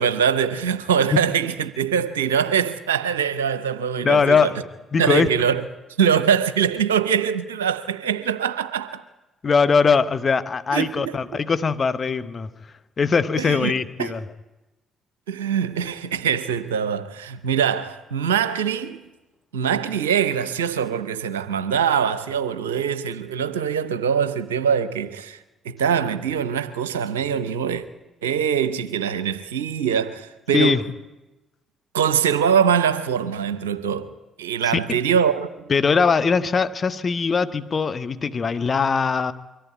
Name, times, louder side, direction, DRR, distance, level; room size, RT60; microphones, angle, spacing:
voice 1, 0.0-4.5 5.0-5.6 6.0-9.0 10.7-11.2 13.4-13.7 14.0-14.2 15.3-19.1 19.5-25.4 25.6-27.8 28.2-30.8 31.9-34.1 34.4-35.7, right 7 dB, 85° right, 0.7 m, -23 dB
voice 2, 4.0-4.6 4.9-5.3 9.4-12.5 13.0-14.2 30.5-30.8 34.7-35.0 35.7-39.3, left 5 dB, 40° left, 1.1 m, -21 dB
23.5 x 14.0 x 9.3 m
hypercardioid pair, 45°, 0 cm